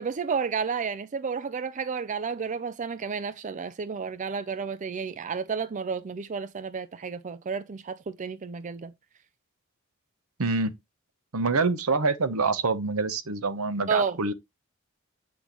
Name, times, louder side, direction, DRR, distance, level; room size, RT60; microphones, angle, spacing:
voice 1, 0.0-8.9 13.9-14.2, right 5 dB, 35° right, 0.4 m, -31 dB
voice 2, 10.4-10.8 11.3-14.3, right 3 dB, 70° right, 0.9 m, -26 dB
8.5 x 6.1 x 3.0 m
head